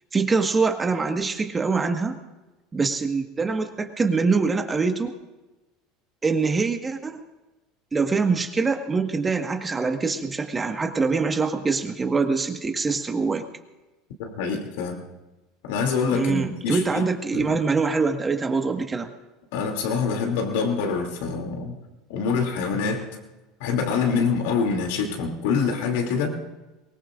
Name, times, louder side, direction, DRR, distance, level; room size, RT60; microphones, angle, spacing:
voice 1, 0.1-2.2 2.7-5.1 6.2-7.2 7.9-13.4 16.1-19.1, right 4 dB, 20° right, 5 dB, 1.6 m, -24 dB
voice 2, 14.2-15.0 15.6-17.0 17.3-17.6 19.5-21.8 22.1-23.1 23.6-26.3, left 5 dB, 70° left, 3 dB, 2.8 m, -25 dB
23.5 x 19.5 x 2.5 m, 1.1 s
hypercardioid pair, 85°, 0 cm